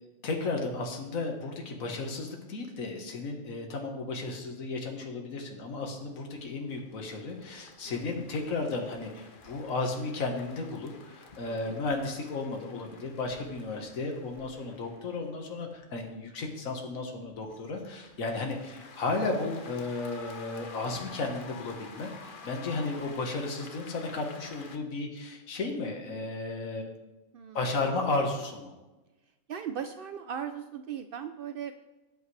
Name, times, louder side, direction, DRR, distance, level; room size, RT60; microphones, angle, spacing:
voice 1, 0.2-22.1 22.4-26.9 27.5-28.7, left 3 dB, 65° left, 2 dB, 1.8 m, -34 dB
sound 1, 6.0-24.8, left 4 dB, 40° left, 0.9 m, -51 dB
voice 2, 7.8-8.2 11.5-11.8 27.3-27.6 29.5-31.9, right 8 dB, 75° right, 9 dB, 0.5 m, -38 dB
18.0 x 8.5 x 3.3 m, 1.1 s
omnidirectional pair, 1.5 m